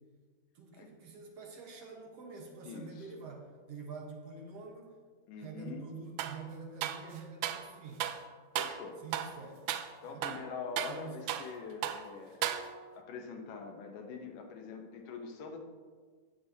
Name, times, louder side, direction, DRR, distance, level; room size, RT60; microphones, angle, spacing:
voice 1, 0.6-5.0 5.4-8.1 9.0-9.6 10.0-10.3 10.9-11.4, right 4 dB, 60° right, 1 dB, 1.9 m, -47 dB
voice 2, 2.6-3.1 5.3-5.9 8.5-9.0 10.0-12.4 12.9-15.6, left 5 dB, 80° left, 3 dB, 2.6 m, -44 dB
sound 1, 6.2-6.4 6.8-7.7 8.0-8.2 8.6-8.8 9.1-9.4 9.7-9.9 10.2-11.6 11.8-12.1 12.4-13.0, right 11 dB, 80° right, 1.8 m, -36 dB
17.0 x 6.4 x 2.8 m, 1.5 s
omnidirectional pair, 3.7 m